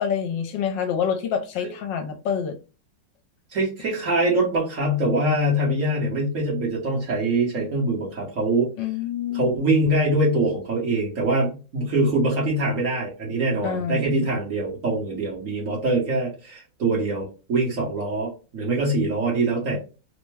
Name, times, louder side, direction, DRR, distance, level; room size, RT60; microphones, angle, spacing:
voice 1, 0.0-2.6 8.8-9.5 13.6-14.3, left 7 dB, 80° left, 6 dB, 1.3 m, -27 dB
voice 2, 3.5-8.7 9.3-19.8, right 2 dB, 50° right, -3 dB, 1.3 m, -23 dB
3.4 x 2.1 x 3.1 m, 0.32 s
omnidirectional pair, 2.0 m